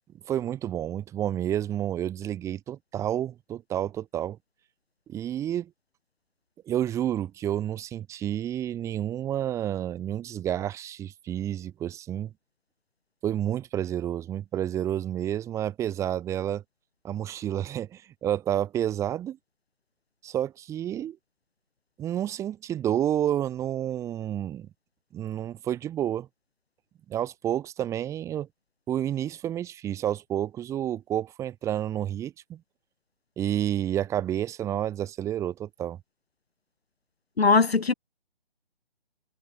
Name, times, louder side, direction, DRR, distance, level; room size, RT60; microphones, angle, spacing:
voice 1, 0.3-4.4 5.1-5.7 6.7-12.3 13.2-16.6 17.0-19.4 20.2-21.2 22.0-24.7 25.1-26.3 27.1-28.5 28.9-32.6 33.4-36.0, right 11 dB, 10° right, 7.3 m, -30 dB
voice 2, 37.4-37.9, left 4 dB, 75° left, 3.8 m, -20 dB
hypercardioid pair, 160°, 31 cm